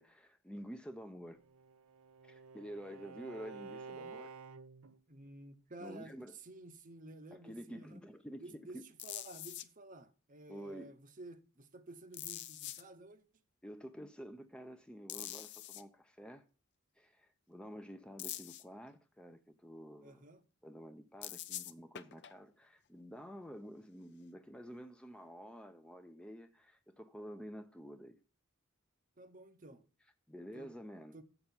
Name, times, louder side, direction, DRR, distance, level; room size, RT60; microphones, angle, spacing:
voice 1, 0.0-1.4 2.2-4.4 5.8-6.4 7.3-8.8 10.5-10.9 13.6-16.4 17.0-20.3 20.6-28.2 30.3-31.2, equal, 5° left, 0.5 m, -49 dB
Bowed string instrument, 1.4-5.0, right 4 dB, 85° right, 0.6 m, -51 dB
voice 2, 5.1-8.0 8.4-13.2 20.0-20.4 29.2-29.8 30.5-30.7 31.1-31.2, right 2 dB, 40° right, 0.8 m, -52 dB
sound 1, 9.0-9.7 12.1-12.8 15.1-15.8 18.2-18.6 21.2-22.4 24.8-24.9, left 13 dB, 55° left, 0.6 m, -44 dB
7.8 x 6.0 x 7.0 m
head